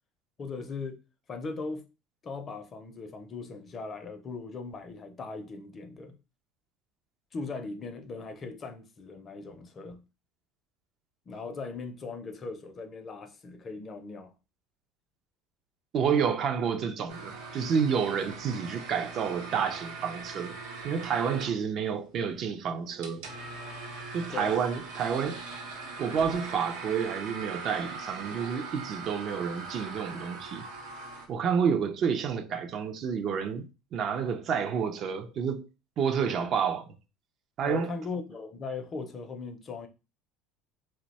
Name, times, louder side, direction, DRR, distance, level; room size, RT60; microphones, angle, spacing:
voice 1, 0.4-1.0 1.3-1.8 2.2-6.1 7.3-10.0 11.3-14.3 24.3-24.6 37.6-39.9, left 4 dB, 35° left, 0.5 m, -39 dB
voice 2, 15.9-20.6 20.8-23.3 24.1-25.4 26.0-30.7 31.3-35.7 36.0-36.8 37.6-37.9, right 7 dB, 45° right, 0.4 m, -29 dB
sound 1, 17.1-31.3, right 3 dB, 85° right, 0.8 m, -41 dB
2.6 x 2.1 x 4.0 m
supercardioid pair, 115°, 0 cm